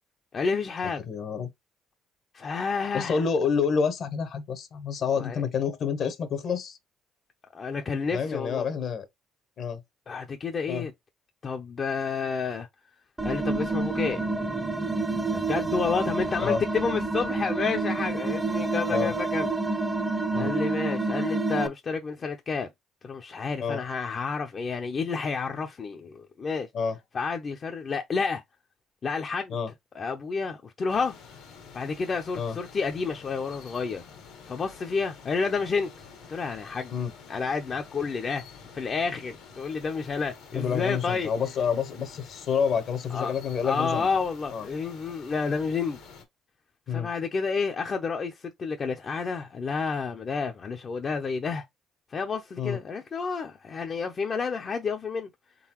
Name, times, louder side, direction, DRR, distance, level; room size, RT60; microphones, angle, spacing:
voice 1, 0.3-1.0 2.3-3.2 5.1-5.4 7.5-8.7 10.1-10.9 11.4-12.7 13.2-14.2 15.3-19.5 20.3-22.7 23.0-26.7 27.1-28.4 29.0-29.6 29.9-31.1 31.7-34.0 34.5-35.9 36.3-36.9 37.3-38.4 38.7-41.3 43.1-43.3 43.6-46.0 46.9-51.6 52.1-55.3, left 5 dB, 45° left, 0.6 m, -30 dB
voice 2, 1.1-1.5 2.9-6.8 8.1-9.0 9.6-9.8 10.7-10.8 16.4-16.6 18.9-19.1 20.3-20.5 23.6-23.8 26.7-27.0 29.5-29.7 32.4-32.6 36.9-37.1 40.5-44.1 44.5-44.7 46.9-47.1 52.6-52.8, left 6 dB, 60° left, 0.9 m, -28 dB
sound 1, 13.2-21.7, right 3 dB, 15° right, 0.6 m, -28 dB
sound 2, 30.9-46.2, left 5 dB, 85° left, 1.4 m, -49 dB
3.9 x 3.6 x 2.9 m
supercardioid pair, 75°, 0 cm